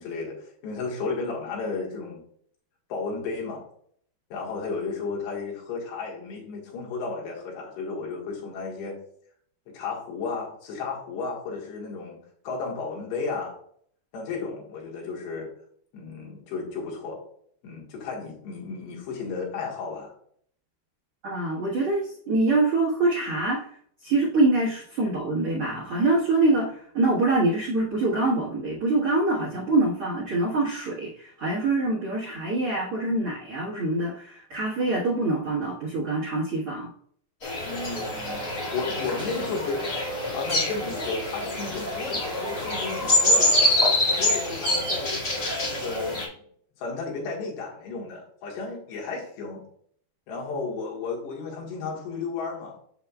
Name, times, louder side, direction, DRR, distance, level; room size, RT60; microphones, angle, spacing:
voice 1, 0.0-2.2 2.9-3.6 4.3-9.0 9.7-12.2 12.5-13.6 14.1-15.5 15.9-17.2 17.6-20.1 37.6-39.9 40.3-43.7 44.2-45.2 45.6-46.4 46.8-49.7 50.3-52.8, left 4 dB, 80° left, -2 dB, 3.6 m, -33 dB
voice 2, 21.2-23.8 24.0-36.9, right 2 dB, 80° right, -5 dB, 1.2 m, -25 dB
sound 1, 37.4-46.3, left 1 dB, 35° left, 1.8 m, -25 dB
7.4 x 6.9 x 2.3 m, 0.62 s
omnidirectional pair, 4.9 m